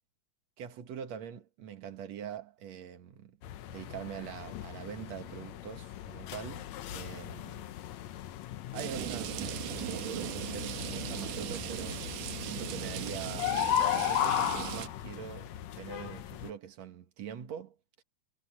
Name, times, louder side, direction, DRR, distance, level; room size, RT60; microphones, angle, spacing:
voice 1, 0.6-3.4 3.7-7.8 8.7-9.4 9.8-18.0, right 9 dB, 65° right, 2.8 m, -44 dB
sound 1, 3.4-16.5, left 11 dB, 70° left, 2.1 m, -36 dB
sound 2, 8.8-14.9, right 13 dB, 85° right, 2.6 m, -38 dB
omnidirectional pair, 3.5 m